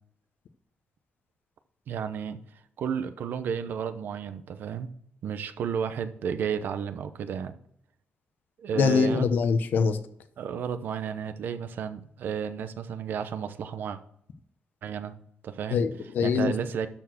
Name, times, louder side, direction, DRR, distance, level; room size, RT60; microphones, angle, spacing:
voice 1, 1.9-2.4 2.8-4.9 5.2-7.5 8.6-9.3 10.4-14.0 14.8-15.1 15.4-15.8 16.2-16.9, right 7 dB, 65° right, 10 dB, 0.8 m, -32 dB
voice 2, 8.7-10.0 15.7-16.5, left 5 dB, 60° left, 9 dB, 0.9 m, -24 dB
12.5 x 4.6 x 6.1 m, 0.70 s
wide cardioid pair, 180°, 4 cm